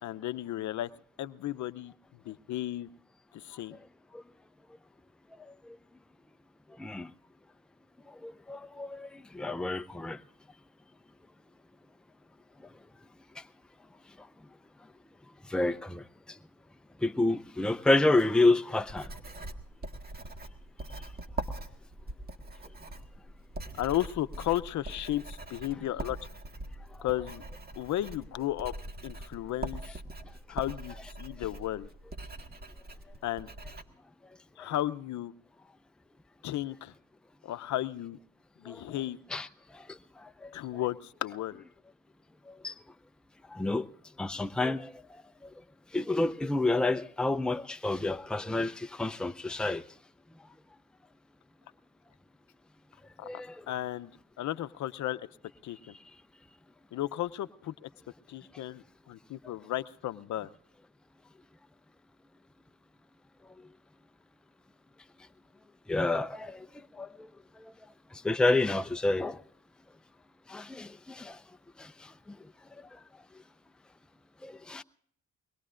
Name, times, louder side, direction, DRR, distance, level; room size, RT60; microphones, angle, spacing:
voice 1, 0.0-0.9 1.2-1.9 2.2-2.9 3.3-3.8 23.7-26.2 27.0-27.4 27.8-28.7 29.0-30.0 30.5-31.9 33.2-33.5 34.6-35.3 36.4-36.9 37.4-38.2 38.6-39.2 40.5-41.6 53.2-53.3 53.7-54.1 54.4-55.3 55.6-56.0 56.9-57.9 58.3-60.5, left 13 dB, 70° left, 0.7 m, -34 dB
voice 2, 5.5-5.8 6.8-7.1 8.2-10.2 13.4-13.5 15.5-16.0 17.0-19.1 38.6-39.0 39.3-39.5 39.7-40.6 42.5-42.7 43.5-43.9 44.2-44.9 45.4-45.5 45.9-49.8 53.2-53.6 65.9-67.3 67.6-67.7 68.1-69.4 70.5-71.4 71.8-72.4 74.4-74.8, left 2 dB, 5° left, 0.5 m, -29 dB
Writing, 18.7-33.8, right 2 dB, 30° right, 1.7 m, -42 dB
23.5 x 20.5 x 2.5 m
cardioid pair, 90°, 30 cm